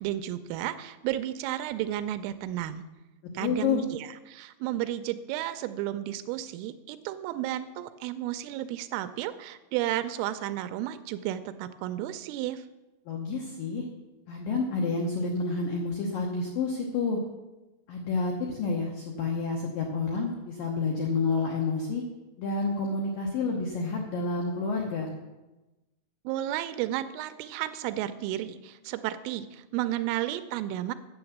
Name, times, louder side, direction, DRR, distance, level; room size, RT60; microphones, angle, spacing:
voice 1, 0.0-2.8 3.3-12.7 26.3-30.9, right 13 dB, 85° right, 11 dB, 3.0 m, -32 dB
voice 2, 3.4-3.8 13.1-13.9 14.3-17.2 17.9-22.0 22.4-25.1, left 4 dB, 90° left, 1 dB, 2.0 m, -29 dB
9.5 x 7.9 x 7.2 m, 1.1 s
omnidirectional pair, 5.8 m